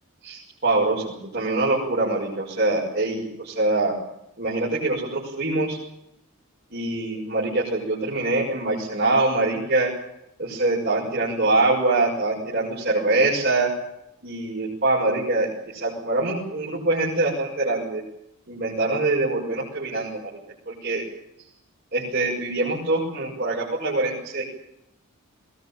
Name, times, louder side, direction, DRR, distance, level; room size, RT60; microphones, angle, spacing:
voice 1, 0.2-3.9 4.4-5.8 6.7-9.9 10.4-13.7 14.2-18.0 18.5-20.3 20.7-21.1 21.9-24.4, right 2 dB, 45° right, -6 dB, 6.6 m, -24 dB
21.5 x 19.5 x 9.1 m, 0.81 s
head